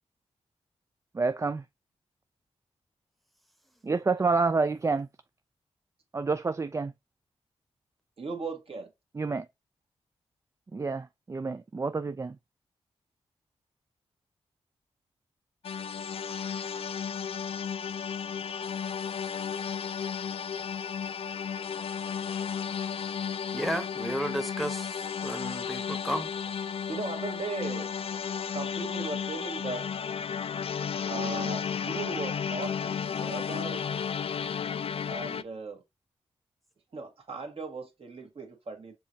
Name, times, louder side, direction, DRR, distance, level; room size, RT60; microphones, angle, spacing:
voice 1, 1.1-1.6 3.8-5.1 6.1-6.9 9.2-9.5 10.7-12.4, right 4 dB, 25° right, 0.3 m, -28 dB
voice 2, 8.2-8.9 26.9-27.9 28.5-29.8 31.0-33.8 35.1-35.8 36.9-38.9, right 3 dB, 55° right, 1.5 m, -37 dB
sound 1, 15.6-35.4, left 7 dB, 60° left, 0.4 m, -33 dB
voice 3, 23.5-26.3, equal, ahead, 0.9 m, -33 dB
5.4 x 3.1 x 2.7 m
cardioid pair, 45°, 11 cm